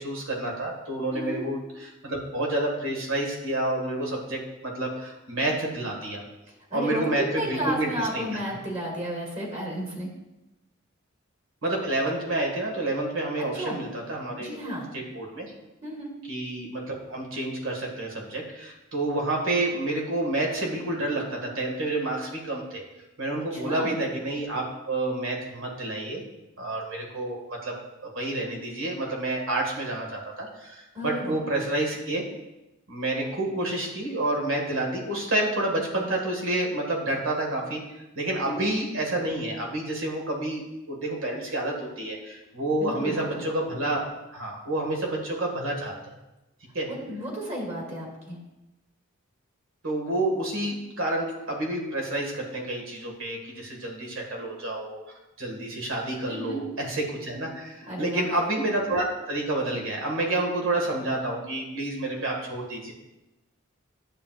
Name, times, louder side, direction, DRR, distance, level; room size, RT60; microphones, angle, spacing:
voice 1, 0.0-6.2 6.7-8.2 11.6-14.5 15.1-15.5 16.3-22.8 23.2-26.2 26.6-27.7 28.0-32.2 32.9-37.8 38.2-44.0 44.3-45.9 46.7-46.9 49.8-55.0 55.4-62.9, right 1 dB, 70° right, 0 dB, 1.9 m, -29 dB
voice 2, 1.1-1.4 6.7-7.0 7.3-10.1 13.5-13.8 14.4-14.9 15.8-16.1 23.5-24.0 30.9-31.4 38.4-38.6 42.8-43.4 46.9-48.4 56.3-56.6 57.9-58.2, equal, 35° right, -3 dB, 2.1 m, -33 dB
10.0 x 7.4 x 2.5 m, 0.96 s
head